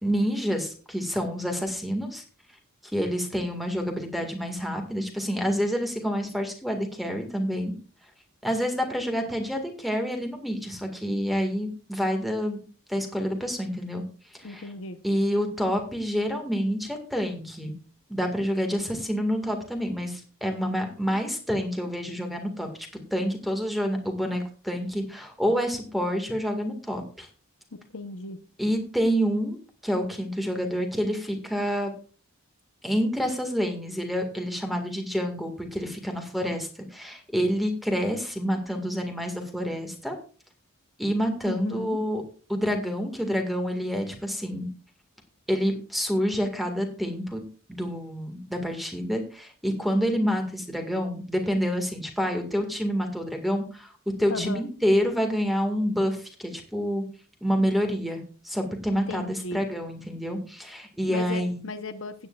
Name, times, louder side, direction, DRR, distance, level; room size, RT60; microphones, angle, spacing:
voice 1, 0.0-2.2 2.9-7.7 8.4-12.6 12.9-14.0 14.3-14.7 15.0-17.8 18.1-22.7 23.1-27.3 28.6-29.6 29.8-31.9 32.8-40.2 41.0-44.7 45.5-47.4 47.7-53.9 54.2-57.0 57.4-61.6, equal, ahead, 4 dB, 1.9 m, -28 dB
voice 2, 14.4-15.0 27.9-28.4 41.5-42.0 54.3-54.6 58.9-59.6 61.1-62.1, left 3 dB, 65° left, 9 dB, 0.9 m, -35 dB
16.0 x 9.1 x 2.4 m, 0.38 s
head